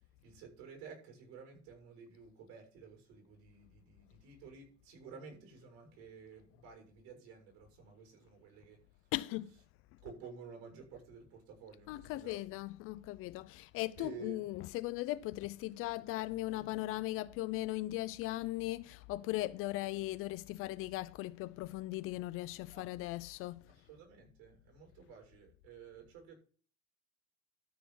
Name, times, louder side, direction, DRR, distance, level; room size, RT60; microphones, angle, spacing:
voice 1, 0.2-9.1 10.0-12.4 14.0-14.5 22.7-22.9 23.7-26.3, right 5 dB, 60° right, 6.9 m, -52 dB
voice 2, 9.1-9.5 11.9-23.7, left 17 dB, 40° left, 0.5 m, -38 dB
13.0 x 4.8 x 7.3 m
supercardioid pair, 135°, 33 cm